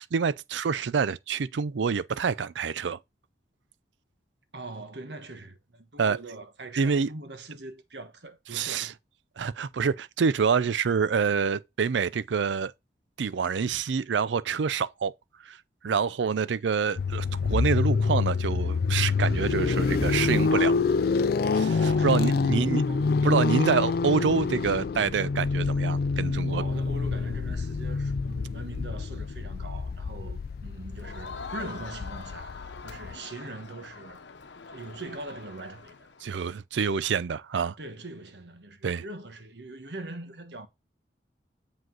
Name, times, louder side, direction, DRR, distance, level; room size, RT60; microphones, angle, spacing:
voice 1, 0.0-3.0 6.0-6.2 6.8-7.1 8.5-8.9 9.4-12.7 13.2-15.1 15.4-15.6 15.8-20.7 21.5-22.8 23.2-26.6 36.2-37.8 38.8-39.0, right 6 dB, 90° right, 0.5 m, -27 dB
voice 2, 4.5-8.9 21.7-23.1 23.4-23.8 26.4-32.5 32.8-34.2 34.7-36.1 37.8-40.7, right 2 dB, 70° right, 1.3 m, -42 dB
sound 1, 17.0-33.1, left 4 dB, 60° left, 0.4 m, -26 dB
Crowd, 31.0-36.3, left 4 dB, 85° left, 0.9 m, -43 dB
7.6 x 5.1 x 3.9 m
head